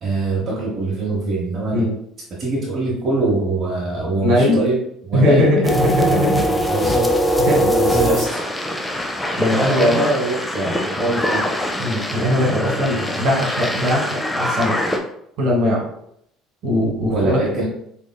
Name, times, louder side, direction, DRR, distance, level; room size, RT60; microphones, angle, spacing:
voice 1, 0.0-1.9 2.4-4.8 5.1-5.5 6.0-7.1 7.6-8.6 9.8-11.4 17.1-17.6, right 2 dB, 50° right, -6 dB, 1.1 m, -23 dB
voice 2, 4.2-4.6 5.1-6.5 7.5-7.6 9.4-10.0 11.8-14.1 14.4-14.7 15.4-15.8 16.6-17.4, left 1 dB, 65° right, -2 dB, 1.4 m, -19 dB
sound 1, 5.6-15.0, equal, 10° left, 0.6 m, -22 dB
4.3 x 2.9 x 2.2 m, 0.71 s
hypercardioid pair, 65°, 0 cm